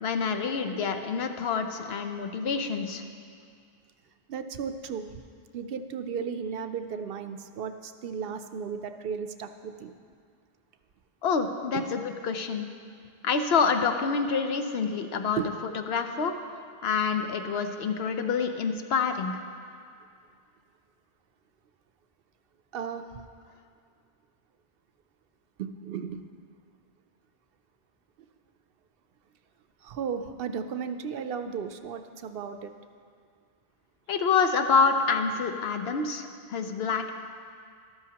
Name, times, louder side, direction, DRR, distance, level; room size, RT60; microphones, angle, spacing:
voice 1, 0.0-3.0 11.2-12.7 13.2-15.4 15.7-16.3 16.8-19.3 34.1-37.1, left 5 dB, 75° left, 6 dB, 0.9 m, -27 dB
voice 2, 4.3-5.2 5.5-9.9 11.7-11.8 15.4-15.5 22.7-23.1 25.6-26.2 29.8-32.7 36.9-37.0, right 7 dB, 70° right, 8 dB, 0.7 m, -35 dB
12.5 x 12.5 x 2.9 m, 2.2 s
omnidirectional pair, 1.0 m